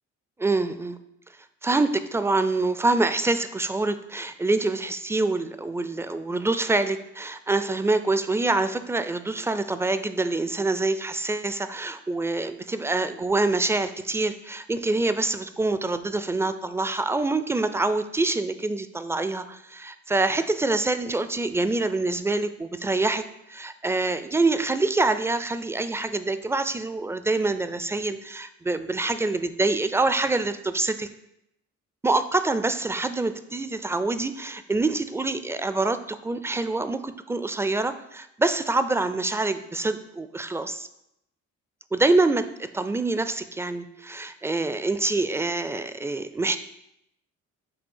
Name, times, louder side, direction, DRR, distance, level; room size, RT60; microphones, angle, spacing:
voice 1, 0.4-1.0 1.6-31.1 32.0-40.9 41.9-46.6, right 2 dB, 10° right, 11 dB, 0.4 m, -26 dB
7.7 x 2.8 x 5.4 m, 0.81 s
cardioid pair, 90°, 30 cm